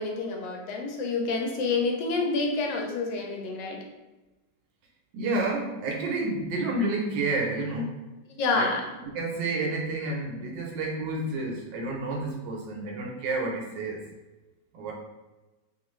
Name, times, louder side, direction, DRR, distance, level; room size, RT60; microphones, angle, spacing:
voice 1, 0.0-3.8 8.4-8.8, left 3 dB, 80° left, 1 dB, 1.2 m, -28 dB
voice 2, 5.1-8.0 8.5-8.7 9.1-14.0 14.7-14.9, right 2 dB, 85° right, -1 dB, 1.3 m, -30 dB
3.0 x 2.4 x 3.0 m, 1.1 s
omnidirectional pair, 1.9 m